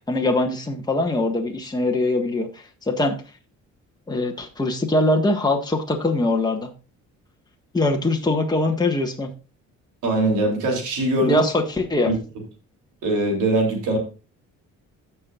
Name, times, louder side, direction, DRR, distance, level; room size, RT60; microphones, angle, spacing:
voice 1, 0.1-3.2 4.1-6.7 7.7-9.3 11.2-12.1, left 2 dB, 15° left, 1 dB, 1.6 m, -22 dB
voice 2, 10.0-11.4 12.1-12.2 13.0-14.0, right 2 dB, 85° right, 1 dB, 3.4 m, -21 dB
15.0 x 6.0 x 2.5 m, 0.33 s
cardioid pair, 90°, 30 cm